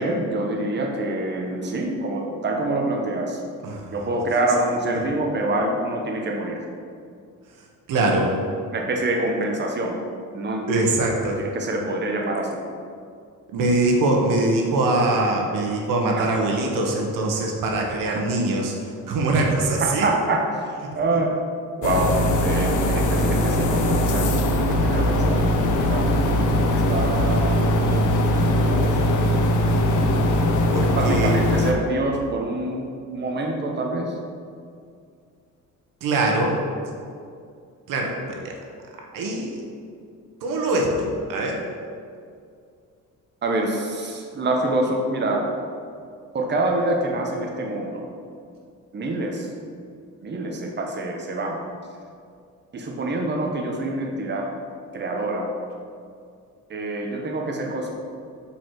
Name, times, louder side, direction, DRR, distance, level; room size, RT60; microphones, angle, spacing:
voice 1, 0.0-3.4 3.9-6.6 8.7-9.9 10.3-10.8 11.4-12.6 16.2-16.3 17.9-18.0 19.8-21.3 21.8-24.5 24.8-25.4 25.8-26.1 26.7-29.0 30.9-32.8 33.1-34.2 43.4-45.5 46.3-48.0 48.9-49.5 50.2-51.6 52.7-54.5 54.9-55.5 56.7-57.9, right 2 dB, 35° right, 1 dB, 1.0 m, -26 dB
voice 2, 3.6-4.0 7.9-8.3 10.7-11.4 13.5-18.7 19.1-20.1 21.1-21.2 30.7-31.4 36.0-36.6 37.9-38.5 39.1-39.6 40.4-41.6, right 2 dB, 85° right, 0 dB, 1.2 m, -23 dB
sound 1, 21.8-31.7, left 1 dB, 65° left, 0.9 m, -20 dB
7.0 x 4.7 x 4.7 m, 2.3 s
cardioid pair, 105°, 32 cm